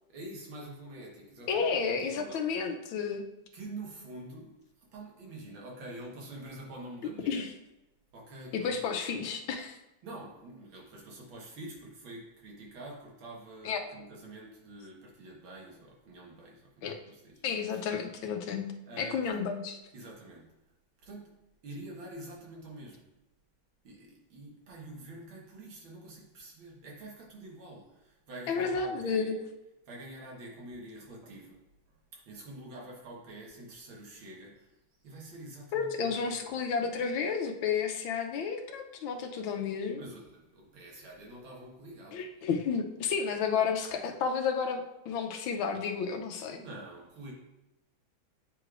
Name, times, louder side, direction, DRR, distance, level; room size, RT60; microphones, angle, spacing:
voice 1, 0.1-2.5 3.5-7.5 8.1-9.0 10.0-17.4 18.9-19.5 19.9-20.5 21.0-21.3 21.6-23.1 23.8-29.4 29.9-31.6 31.9-34.8 35.0-36.5 40.0-42.2 46.5-47.3, right 1 dB, 80° right, -2 dB, 2.1 m, -46 dB
voice 2, 1.5-3.3 7.3-7.5 8.5-9.8 13.6-13.8 16.8-17.0 17.4-19.7 28.5-29.3 35.7-40.0 42.1-46.6, left 6 dB, 85° left, 5 dB, 1.5 m, -31 dB
8.5 x 4.9 x 2.5 m, 0.94 s
omnidirectional pair, 2.2 m